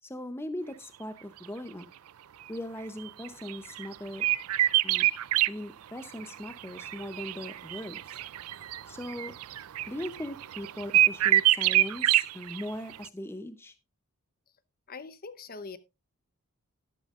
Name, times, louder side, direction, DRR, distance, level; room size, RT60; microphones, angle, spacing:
voice 1, 0.0-1.9 2.5-4.3 4.8-5.1 5.5-8.2 8.9-9.3 9.9-13.7, left 1 dB, 10° left, 0.6 m, -39 dB
sound 1, 3.1-5.5 6.2-12.6 12.9-13.1, right 14 dB, 85° right, 0.4 m, -26 dB
voice 2, 14.9-15.8, left 4 dB, 45° left, 0.9 m, -42 dB
12.0 x 12.0 x 2.5 m
head